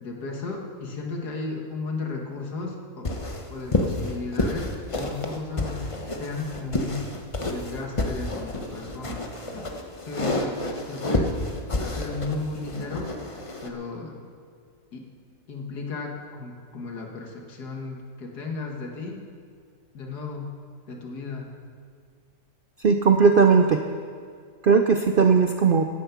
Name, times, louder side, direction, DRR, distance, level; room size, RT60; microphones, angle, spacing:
voice 1, 0.0-3.1 3.5-7.1 7.4-9.6 10.0-10.6 10.9-11.4 11.8-13.1 13.6-14.2 14.9-15.1 15.5-19.2 19.9-20.5 20.9-21.5, left 3 dB, 80° left, 1 dB, 2.1 m, -34 dB
sound 1, 3.0-13.7, left 2 dB, 25° left, 0.9 m, -29 dB
voice 2, 22.8-23.8 24.6-25.8, right 5 dB, 65° right, 5 dB, 0.5 m, -18 dB
15.5 x 10.5 x 5.9 m, 2.1 s
omnidirectional pair, 1.7 m